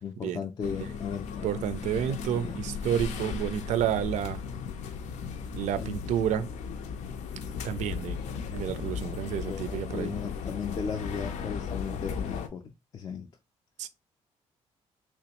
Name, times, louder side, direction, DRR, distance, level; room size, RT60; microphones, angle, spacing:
voice 1, 0.0-1.6 2.0-2.6 5.8-5.9 9.2-13.3, left 6 dB, 30° left, 0.4 m, -37 dB
sound 1, 0.6-12.5, left 6 dB, 90° left, 0.5 m, -36 dB
voice 2, 1.4-4.4 5.5-6.5 7.6-8.2 8.4-10.1 13.8-13.9, right 9 dB, 90° right, 0.4 m, -30 dB
3.4 x 3.0 x 2.9 m
cardioid pair, 175°, 12 cm